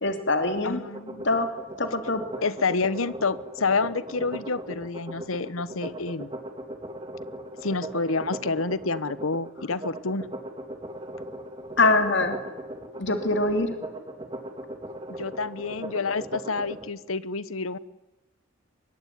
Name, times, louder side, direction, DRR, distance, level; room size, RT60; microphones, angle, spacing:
voice 1, 0.0-0.8 1.2-1.5 1.8-2.2 11.8-12.4 13.0-13.7, left 2 dB, 60° left, 7 dB, 2.8 m, -23 dB
voice 2, 0.6-1.3 2.4-6.3 7.6-10.2 15.2-17.8, left 4 dB, 90° left, 18 dB, 1.1 m, -28 dB
sound 1, 0.8-16.8, right 1 dB, 25° right, 3.0 m, -38 dB
24.5 x 22.5 x 9.5 m, 1.0 s
head